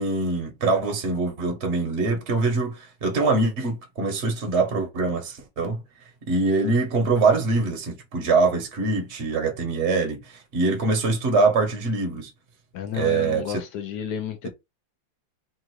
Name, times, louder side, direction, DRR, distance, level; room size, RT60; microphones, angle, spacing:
voice 1, 0.0-5.8 6.3-12.3 12.9-13.6, right 3 dB, 45° right, 1.0 m, -23 dB
voice 2, 12.7-14.5, left 9 dB, 70° left, 1.0 m, -31 dB
3.6 x 2.4 x 4.5 m
omnidirectional pair, 2.3 m